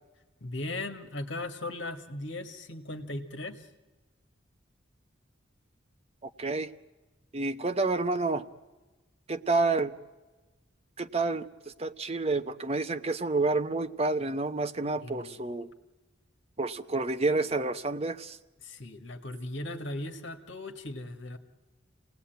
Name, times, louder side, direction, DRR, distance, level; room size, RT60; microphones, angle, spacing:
voice 1, 0.4-3.7 15.0-15.4 18.6-21.4, left 2 dB, 65° left, 7 dB, 1.9 m, -38 dB
voice 2, 6.2-6.7 7.3-8.4 9.3-9.9 11.0-11.5 11.8-15.7 16.6-18.4, right 3 dB, 30° right, 8 dB, 0.9 m, -29 dB
28.5 x 18.5 x 9.2 m, 1.2 s
head